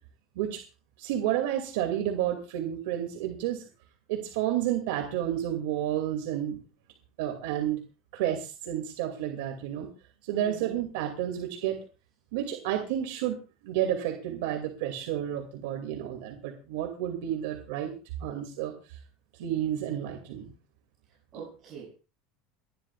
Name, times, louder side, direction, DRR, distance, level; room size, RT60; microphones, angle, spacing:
voice 1, 1.0-3.6 4.1-6.6 7.2-7.8 8.1-9.9 10.2-11.8 12.3-13.4 13.6-17.9 18.2-19.0 19.4-20.5, right 11 dB, 80° right, 3 dB, 2.4 m, -31 dB
voice 2, 10.3-10.8 21.3-21.9, right 5 dB, 35° right, -6 dB, 6.7 m, -44 dB
29.5 x 11.5 x 2.4 m, 0.32 s
cardioid pair, 165°, 0 cm